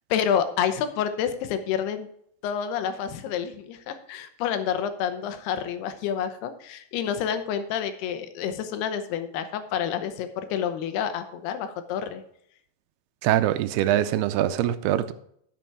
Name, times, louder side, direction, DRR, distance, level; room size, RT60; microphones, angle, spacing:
voice 1, 0.1-2.1 2.4-12.2, left 8 dB, 85° left, 9 dB, 2.9 m, -28 dB
voice 2, 13.2-15.1, right 12 dB, 85° right, 12 dB, 2.6 m, -23 dB
11.0 x 6.9 x 4.6 m, 0.68 s
omnidirectional pair, 4.5 m